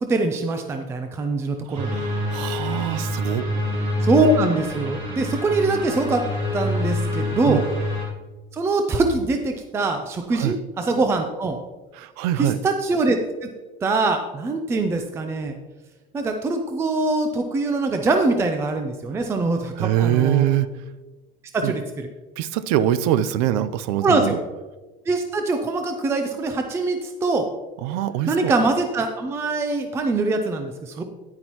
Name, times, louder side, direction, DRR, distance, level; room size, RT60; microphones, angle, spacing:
voice 1, 0.0-2.0 4.0-6.2 6.5-7.6 8.5-11.6 12.3-13.5 13.8-15.5 16.1-20.5 21.5-22.1 24.0-24.4 25.1-27.5 28.3-31.0, right 3 dB, 15° right, 5 dB, 0.4 m, -23 dB
sound 1, 1.7-8.1, left 1 dB, 30° right, 3.0 m, -26 dB
voice 2, 1.7-3.4 7.5-7.7 10.3-10.6 12.0-12.6 19.8-20.7 21.6-21.7 22.4-24.4 27.8-28.5, right 12 dB, 80° right, 15 dB, 0.6 m, -23 dB
9.9 x 9.5 x 3.0 m, 1.2 s
cardioid pair, 170°, 20 cm